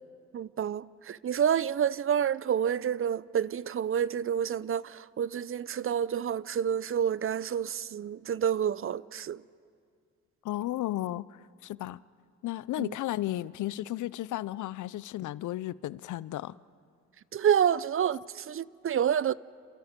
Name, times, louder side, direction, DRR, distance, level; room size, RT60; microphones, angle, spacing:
voice 1, 0.3-9.4 12.8-12.9 17.3-19.3, right 8 dB, 45° right, 0.6 m, -28 dB
voice 2, 10.4-12.0 12.4-16.6, left 15 dB, 65° left, 0.6 m, -34 dB
28.5 x 28.0 x 5.2 m
supercardioid pair, 60°, 32 cm